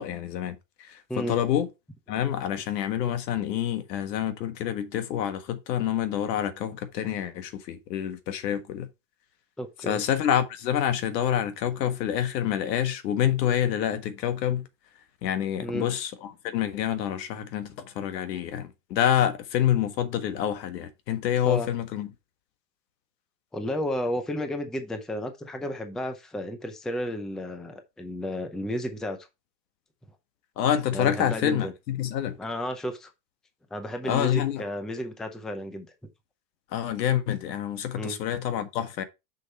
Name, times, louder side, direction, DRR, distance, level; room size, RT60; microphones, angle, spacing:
voice 1, 0.0-1.7 2.1-8.9 9.8-14.7 15.2-22.1 30.6-32.4 34.1-34.6 36.7-39.0, left 10 dB, 75° left, 1.6 m, -27 dB
voice 2, 9.6-10.0 15.6-15.9 21.4-21.7 23.5-29.2 30.9-31.7 32.4-33.1 33.7-35.9 38.0-38.2, equal, ahead, 0.6 m, -32 dB
6.5 x 5.7 x 4.3 m
supercardioid pair, 140°, 50 cm